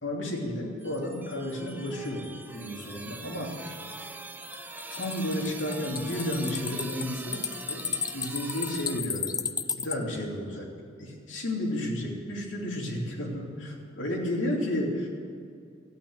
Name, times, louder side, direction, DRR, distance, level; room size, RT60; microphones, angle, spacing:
voice 1, 0.0-2.2 2.5-3.8 4.9-7.4 7.7-9.3 9.8-10.7 11.0-15.1, left 1 dB, 75° left, -2 dB, 3.0 m, -32 dB
sound 1, 0.8-9.0, right 2 dB, 10° right, 0.7 m, -42 dB
sound 2, 4.4-10.0, left 7 dB, 20° left, 0.4 m, -34 dB
14.0 x 8.8 x 9.5 m, 2.3 s
head